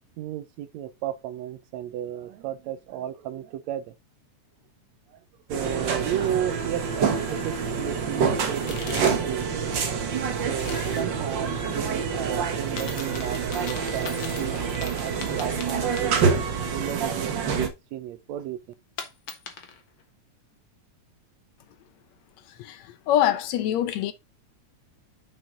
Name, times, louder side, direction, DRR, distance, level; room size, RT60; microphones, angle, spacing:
voice 1, 0.2-3.9 5.1-5.2 5.5-9.5 10.5-18.6, right 11 dB, 75° right, 1.9 m, -34 dB
sound 1, 5.5-17.7, right 6 dB, 50° right, 1.6 m, -27 dB
sound 2, 8.6-9.4 9.7-11.1 12.6-16.7 17.0-17.1 19.0-19.8, left 5 dB, 50° left, 1.9 m, -40 dB
voice 2, 22.6-24.1, left 11 dB, 75° left, 1.8 m, -24 dB
7.3 x 6.1 x 3.8 m
omnidirectional pair, 3.4 m